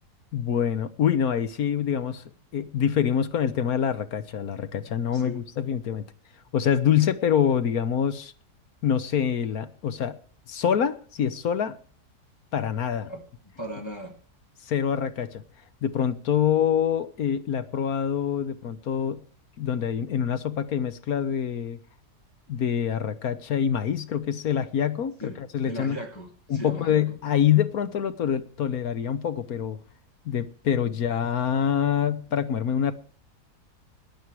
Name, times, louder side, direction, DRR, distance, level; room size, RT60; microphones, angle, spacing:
voice 1, 0.3-2.2 2.5-6.0 6.5-8.3 8.8-10.1 10.5-11.8 12.5-13.1 14.6-15.4 15.8-19.2 19.6-21.8 22.5-26.0 26.5-29.8 30.2-32.9, left 8 dB, 65° left, 1.4 m, -25 dB
voice 2, 13.1-14.1 19.8-19.9 25.2-25.4 25.6-27.2, equal, 15° left, 2.5 m, -38 dB
17.5 x 11.0 x 4.8 m
omnidirectional pair, 1.7 m